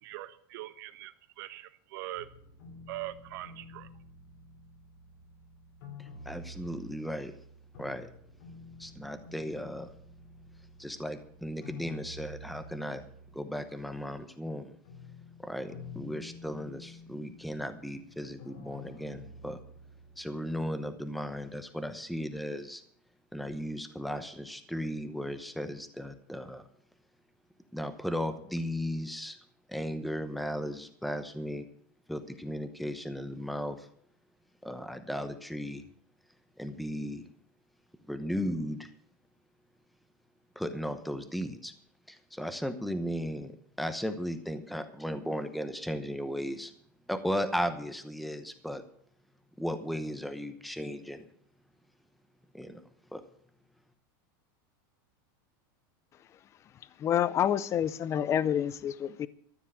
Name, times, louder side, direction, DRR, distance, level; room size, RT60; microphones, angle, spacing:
voice 1, 0.0-2.3 2.9-3.9, right 16 dB, 65° right, 11 dB, 1.2 m, -42 dB
sound 1, 2.1-14.2 14.5-20.9, left 2 dB, 70° left, 3.1 m, -50 dB
voice 2, 6.0-7.3 7.8-8.1 8.8-9.9 10.8-13.0 13.3-14.7 15.4-19.6 20.2-22.8 23.3-26.6 27.7-29.4 29.7-31.6 32.1-33.9 34.6-35.8 36.6-37.2 38.1-38.9 40.6-41.7 42.1-43.5 43.8-46.7 47.1-48.8 49.6-51.2 52.5-52.8 53.1-53.2, equal, ahead, 8 dB, 0.9 m, -36 dB
voice 3, 57.0-59.3, left 10 dB, 25° left, 16 dB, 0.5 m, -28 dB
13.5 x 7.4 x 8.6 m, 0.63 s
supercardioid pair, 150°, 12 cm